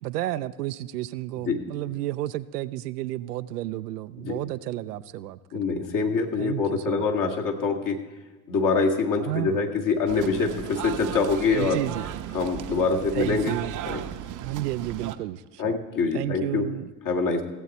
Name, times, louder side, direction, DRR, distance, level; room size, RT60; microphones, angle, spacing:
voice 1, 0.0-5.6 6.4-7.1 9.3-9.6 11.5-12.2 13.1-13.8 14.4-15.8 16.1-16.9, right 15 dB, 85° right, 0.5 m, -32 dB
voice 2, 5.5-8.0 8.5-11.8 12.3-13.5 13.9-14.0 15.6-16.7 17.1-17.4, left 4 dB, 45° left, 1.9 m, -25 dB
sound 1, 10.1-15.2, right 11 dB, 45° right, 0.7 m, -35 dB
16.5 x 7.9 x 4.2 m
hypercardioid pair, 70°, 46 cm